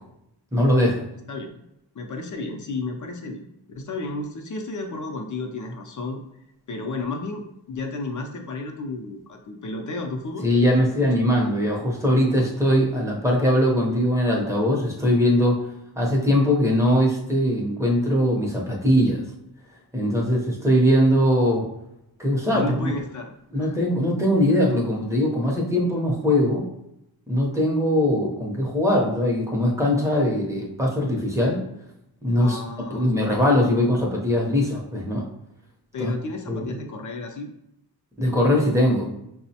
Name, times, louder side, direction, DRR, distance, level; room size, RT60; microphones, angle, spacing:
voice 1, 0.5-1.0 10.4-15.6 16.0-19.2 19.9-21.7 22.2-22.9 23.5-26.6 27.3-31.6 32.2-32.6 32.9-35.3 36.0-36.1 36.5-36.7 38.2-39.1, left 1 dB, 5° right, -2 dB, 0.7 m, -21 dB
voice 2, 1.3-1.6 2.0-3.5 3.7-6.2 6.7-10.5 10.8-11.1 22.5-23.3 23.6-23.8 32.4-33.1 35.9-37.5, left 2 dB, 50° left, 3 dB, 0.5 m, -32 dB
5.8 x 2.0 x 2.7 m, 0.82 s
wide cardioid pair, 150°, 40 cm